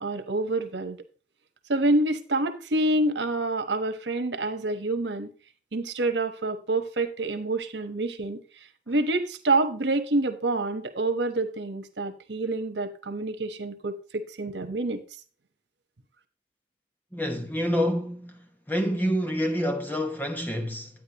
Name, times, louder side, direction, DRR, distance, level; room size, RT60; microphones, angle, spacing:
voice 1, 0.0-1.0 1.7-5.3 5.7-15.0, right 2 dB, 85° right, 1.2 m, -27 dB
voice 2, 17.1-20.9, equal, 10° left, 1.0 m, -28 dB
10.5 x 9.1 x 3.0 m
head